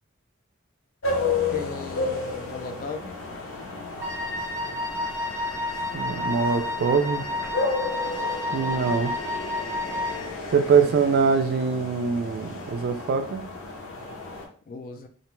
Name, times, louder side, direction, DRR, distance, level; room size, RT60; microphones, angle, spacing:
sound 1, 1.0-14.5, left 3 dB, 70° left, 0.7 m, -32 dB
voice 1, 1.5-3.2 10.8-10.9 14.7-15.1, left 3 dB, 45° left, 6 dB, 0.4 m, -37 dB
Wind instrument woodwind instrument, 4.0-10.4, left 2 dB, 15° right, 0.6 m, -31 dB
voice 2, 5.9-7.2 8.5-9.1 10.5-13.5, right 5 dB, 50° right, 8 dB, 0.3 m, -23 dB
2.5 x 2.2 x 3.0 m, 0.43 s
head